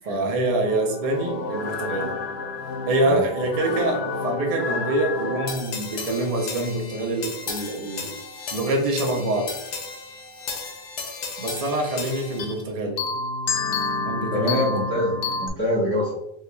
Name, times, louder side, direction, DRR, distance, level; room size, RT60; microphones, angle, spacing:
voice 1, 0.1-2.2 2.9-8.1 8.5-9.5 11.4-13.0 14.0-14.7, right 2 dB, 40° right, 0 dB, 0.7 m, -25 dB
sound 1, 0.7-12.6 13.0-15.5, left 4 dB, 80° left, 0.8 m, -31 dB
voice 2, 14.3-16.1, left 1 dB, 10° left, -9 dB, 1.0 m, -25 dB
4.7 x 2.8 x 2.2 m, 0.80 s
omnidirectional pair, 1.0 m